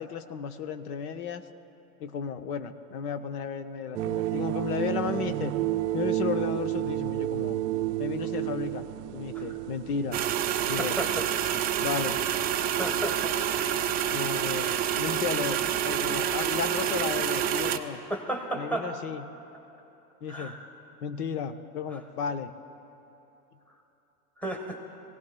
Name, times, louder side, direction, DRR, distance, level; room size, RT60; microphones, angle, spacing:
voice 1, 0.0-1.4 2.0-5.5 5.9-7.6 8.0-8.9 9.1-10.2 10.7-11.0 11.8-12.2 14.1-18.0 18.5-19.3 20.2-20.6 21.0-22.5, left 7 dB, 70° left, 9 dB, 0.9 m, -34 dB
sound 1, 3.9-14.0, right 15 dB, 80° right, 0.5 m, -32 dB
sound 2, 10.1-17.8, right 10 dB, 20° right, 0.3 m, -28 dB
voice 2, 10.8-11.2 12.8-13.3 14.2-14.4 18.1-18.9 20.3-20.7 21.9-22.0 24.4-24.8, right 1 dB, 5° left, 1 dB, 1.3 m, -33 dB
23.5 x 17.0 x 2.3 m, 3.0 s
hypercardioid pair, 100°, 47 cm